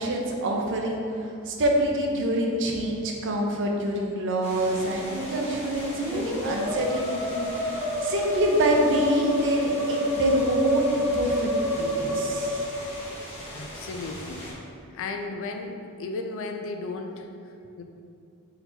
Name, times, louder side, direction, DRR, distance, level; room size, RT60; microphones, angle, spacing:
voice 1, 0.0-12.6, right 1 dB, 60° right, 0 dB, 0.6 m, -26 dB
sound 1, 4.4-14.5, left 1 dB, 30° left, 1.1 m, -40 dB
Musical instrument, 4.8-13.6, equal, 5° right, 0.6 m, -29 dB
voice 2, 13.5-17.8, left 3 dB, 65° left, 5 dB, 0.4 m, -35 dB
4.3 x 4.1 x 2.7 m, 2.5 s
head